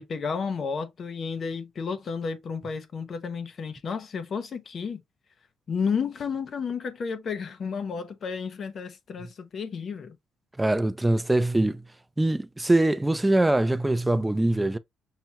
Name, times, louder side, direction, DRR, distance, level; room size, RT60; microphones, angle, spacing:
voice 1, 0.0-5.0 5.7-10.2, left 5 dB, 40° left, 0.6 m, -32 dB
voice 2, 10.6-11.8 12.2-14.8, right 1 dB, 10° right, 0.3 m, -23 dB
5.7 x 2.3 x 2.8 m
cardioid pair, 160°, 0 cm